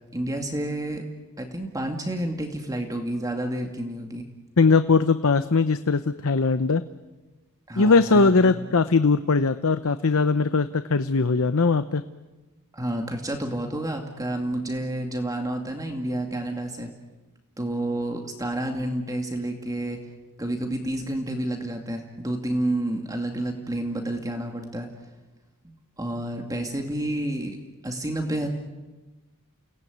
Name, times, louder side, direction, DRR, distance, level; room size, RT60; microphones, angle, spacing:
voice 1, 0.1-1.0 1.4-4.2 7.7-8.7 12.7-16.9 17.6-20.0 20.4-24.9 25.6-27.6 27.8-28.5, right 1 dB, 15° right, 3 dB, 2.3 m, -30 dB
voice 2, 4.6-6.8 7.8-12.0, left 4 dB, 70° left, 11 dB, 0.8 m, -20 dB
29.5 x 18.5 x 9.4 m, 1.2 s
head